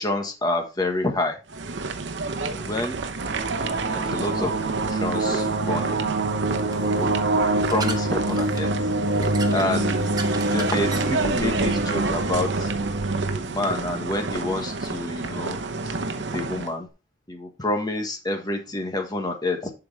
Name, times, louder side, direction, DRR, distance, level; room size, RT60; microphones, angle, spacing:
voice 1, 0.0-1.4 2.4-3.0 3.5-6.1 6.7-8.7 9.5-10.2 10.5-12.7 13.3-15.6 15.8-15.9 16.3-16.9 17.3-19.7, left 2 dB, 20° left, 4 dB, 1.4 m, -28 dB
sound 1, 1.5-16.7, right 3 dB, 70° right, 0.9 m, -30 dB
sound 2, 3.2-13.4, right 2 dB, 90° right, 1.2 m, -25 dB
sound 3, 5.2-12.1, right 3 dB, 20° right, 1.1 m, -39 dB
11.5 x 4.7 x 3.4 m, 0.30 s
head